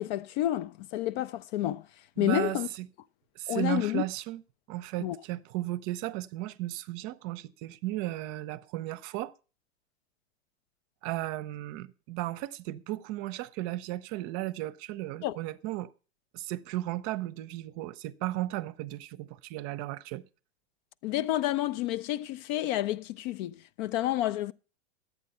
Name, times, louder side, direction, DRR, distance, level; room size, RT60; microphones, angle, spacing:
voice 1, 0.0-1.8 2.2-2.7 3.5-4.0 5.0-5.2 15.2-15.4 21.0-24.5, left 14 dB, 40° left, 0.4 m, -30 dB
voice 2, 2.2-2.9 3.4-4.4 4.7-9.3 11.0-15.9 16.3-20.2, right 16 dB, 45° right, 0.7 m, -35 dB
11.5 x 8.4 x 5.5 m
hypercardioid pair, 110°, 33 cm